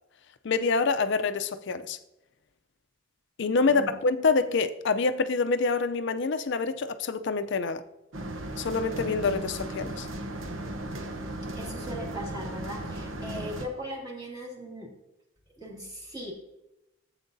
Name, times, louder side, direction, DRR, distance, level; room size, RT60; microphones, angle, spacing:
voice 1, 0.4-2.0 3.4-7.8 8.6-10.1, left 4 dB, 65° left, 0.5 m, -26 dB
sound 1, 8.1-13.7, right 1 dB, 85° right, 0.9 m, -36 dB
voice 2, 11.5-14.9 15.6-16.3, equal, 20° right, 2.3 m, -39 dB
13.0 x 8.0 x 2.7 m
head